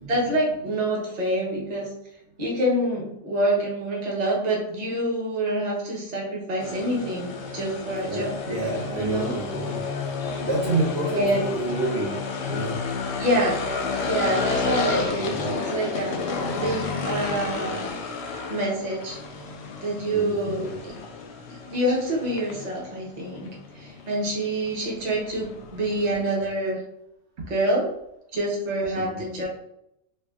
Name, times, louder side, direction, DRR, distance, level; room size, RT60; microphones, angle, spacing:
voice 1, 0.1-1.9 2.4-8.4 8.9-9.4 11.1-11.4 13.2-13.7 14.0-18.0 18.5-19.2 19.8-21.0 21.5-23.5 23.7-26.8 27.5-27.9 28.3-29.5, right 1 dB, 35° right, -3 dB, 0.9 m, -26 dB
sound 1, 6.6-26.5, left 4 dB, 65° left, 0.7 m, -31 dB
voice 2, 8.1-9.9 10.4-12.8 20.1-20.8 27.4-27.5 28.9-29.4, right 2 dB, 60° right, -4 dB, 0.9 m, -29 dB
4.3 x 2.4 x 2.4 m, 0.80 s
omnidirectional pair, 1.4 m